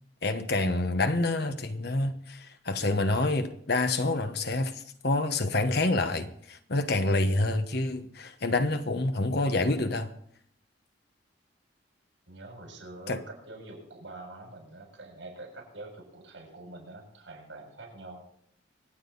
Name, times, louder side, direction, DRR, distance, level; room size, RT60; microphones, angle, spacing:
voice 1, 0.2-10.1 13.1-13.2, left 2 dB, 55° left, 1.2 m, -27 dB
voice 2, 12.3-18.3, right 2 dB, 75° right, 7.2 m, -45 dB
25.5 x 8.9 x 4.0 m
head